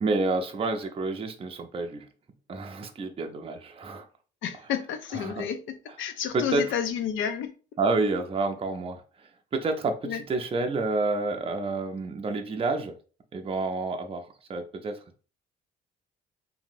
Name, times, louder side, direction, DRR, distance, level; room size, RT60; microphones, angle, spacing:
voice 1, 0.0-2.1 2.5-4.1 5.1-5.5 6.3-6.6 7.8-12.9 13.3-15.2, right 3 dB, 30° right, 0.5 m, -29 dB
voice 2, 4.4-7.5 10.0-10.2, left 8 dB, 80° left, 0.5 m, -31 dB
2.9 x 2.7 x 2.5 m
cardioid pair, 90°, 20 cm